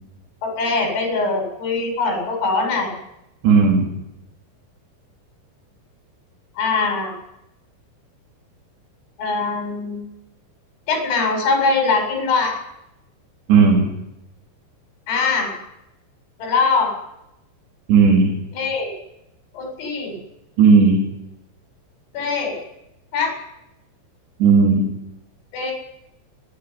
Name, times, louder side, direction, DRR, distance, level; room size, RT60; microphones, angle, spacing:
voice 1, 0.4-3.0 6.6-7.1 9.2-10.0 10.9-12.6 15.1-15.5 16.4-17.0 18.5-18.9 19.5-20.2 22.1-22.6 23.1-23.4 25.5-25.7, left 4 dB, 85° left, 2 dB, 10.5 m, -22 dB
voice 2, 3.4-3.9 13.5-13.9 17.9-18.4 20.6-21.0 24.4-24.9, right 5 dB, 60° right, 0 dB, 5.5 m, -14 dB
29.5 x 13.0 x 9.9 m, 0.86 s
omnidirectional pair, 5.8 m